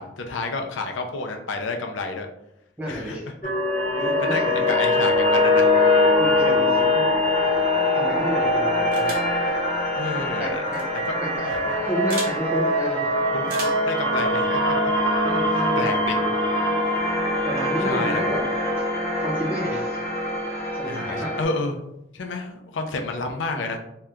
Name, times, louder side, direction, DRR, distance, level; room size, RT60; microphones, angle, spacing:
voice 1, 0.0-2.3 2.9-3.2 4.0-4.4 4.7-5.7 9.9-10.6 11.1-11.6 13.3-14.8 15.5-16.2 17.8-18.2 20.9-21.8 22.1-23.8, left 3 dB, 75° left, 4 dB, 0.5 m, -30 dB
voice 2, 2.8-3.3 4.0-4.6 6.2-7.2 7.9-9.2 10.4-10.8 11.2-13.0 15.2-16.0 17.4-18.4 19.2-20.1 20.8-21.3, equal, 5° right, -4 dB, 0.7 m, -31 dB
sound 1, 3.4-21.4, left 1 dB, 30° left, 1.0 m, -22 dB
sound 2, 8.9-9.3 10.6-10.8 12.1-12.4 13.4-13.9, right 2 dB, 45° right, 0.7 m, -34 dB
2.8 x 2.3 x 3.4 m, 0.82 s
head